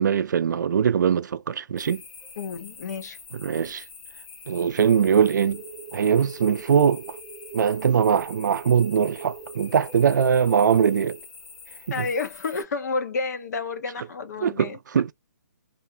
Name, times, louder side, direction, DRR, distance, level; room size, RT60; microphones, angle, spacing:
voice 1, 0.0-2.0 3.4-3.8 4.5-5.6 5.9-7.0 7.5-11.2 12.0-12.1 14.4-15.1, right 7 dB, 70° right, 0.4 m, -21 dB
sound 1, 1.8-12.6, left 5 dB, 25° left, 0.7 m, -45 dB
voice 2, 2.4-3.2 11.9-14.8, left 4 dB, 60° left, 0.7 m, -30 dB
sound 2, 4.6-11.1, right 7 dB, 20° right, 0.6 m, -43 dB
2.5 x 2.1 x 2.6 m
hypercardioid pair, 150°, 10 cm